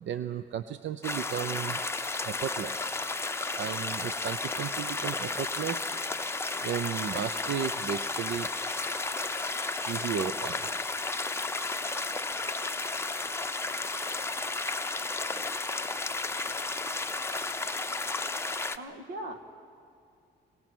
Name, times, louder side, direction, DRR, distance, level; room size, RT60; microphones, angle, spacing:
voice 1, 0.0-1.8 2.3-2.8 3.6-5.9 6.6-8.5 9.9-10.6, right 9 dB, 65° right, 12 dB, 0.7 m, -34 dB
sound 1, 1.0-18.8, left 3 dB, 10° left, 0.7 m, -33 dB
voice 2, 18.7-19.4, right 1 dB, 85° right, 6 dB, 2.0 m, -39 dB
27.0 x 18.0 x 6.2 m, 2.5 s
cardioid pair, 90°, 20 cm